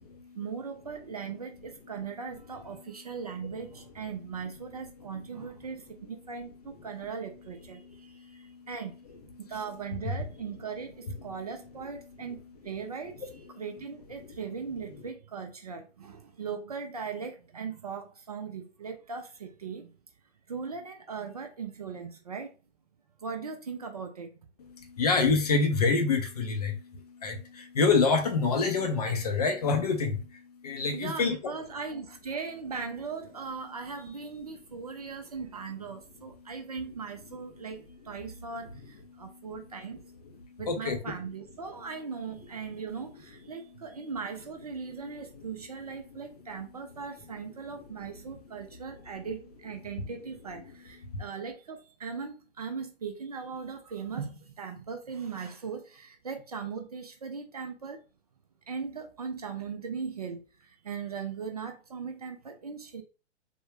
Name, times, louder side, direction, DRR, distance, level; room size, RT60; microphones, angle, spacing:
voice 1, 0.3-8.9 9.4-20.0 20.5-22.5 23.2-24.3 30.9-40.0 40.6-58.0 58.7-63.0, right 5 dB, 35° right, 0.4 m, -39 dB
voice 2, 8.0-8.7 24.7-31.5 39.2-39.3 40.7-41.0 51.1-51.2, left 4 dB, 35° left, 0.5 m, -27 dB
3.4 x 2.0 x 3.1 m
figure-of-eight pair, 120°, 36 cm